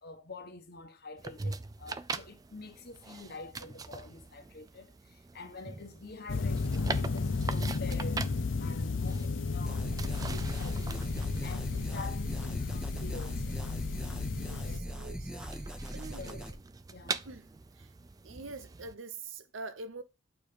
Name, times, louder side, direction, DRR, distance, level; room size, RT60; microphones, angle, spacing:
voice 1, 0.0-8.3 8.6-11.0 11.4-13.5 14.6-14.9 16.2-16.4 16.9-17.2, left 3 dB, 55° left, 1.1 m, -47 dB
sound 1, 1.2-19.0, right 4 dB, 20° right, 0.3 m, -43 dB
sound 2, 6.3-14.8, left 4 dB, 75° left, 0.6 m, -33 dB
sound 3, 9.7-16.5, equal, 5° right, 1.0 m, -40 dB
voice 2, 14.3-15.7 15.9-16.4 17.2-17.5 17.7-17.9 18.2-20.0, right 3 dB, 85° right, 0.9 m, -45 dB
8.8 x 3.3 x 5.0 m
head